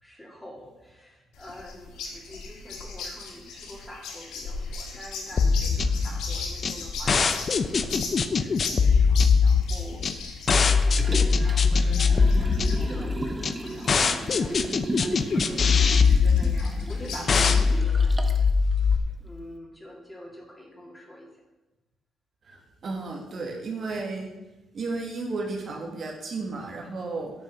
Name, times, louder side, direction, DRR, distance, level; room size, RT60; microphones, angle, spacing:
voice 1, 0.0-21.3, equal, 10° left, 0 dB, 2.8 m, -46 dB
sound 1, 1.3-17.8, left 4 dB, 85° left, 1.9 m, -39 dB
sound 2, 5.4-19.0, left 5 dB, 45° left, 0.7 m, -22 dB
Liquid, 10.8-18.5 18.9-19.0, right 2 dB, 20° right, 1.0 m, -35 dB
voice 2, 22.4-24.3 24.7-27.3, right 3 dB, 50° right, 0 dB, 2.1 m, -33 dB
9.4 x 5.9 x 6.6 m, 1.0 s
cardioid pair, 90°, 0 cm